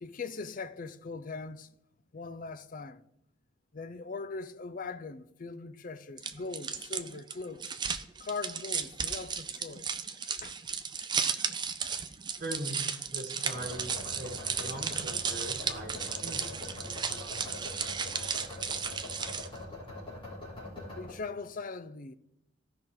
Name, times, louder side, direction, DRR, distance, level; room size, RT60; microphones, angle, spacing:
voice 1, 0.0-1.7 2.1-3.0 3.7-7.8 8.2-9.9 10.4-10.6 20.9-22.2, left 4 dB, 45° left, 0.5 m, -40 dB
sound 1, 6.2-19.6, right 6 dB, 25° right, 0.5 m, -35 dB
voice 2, 12.4-17.5, right 1 dB, 45° right, 1.9 m, -42 dB
sound 2, 13.5-21.1, left 2 dB, 25° left, 3.7 m, -43 dB
15.5 x 5.8 x 3.9 m
head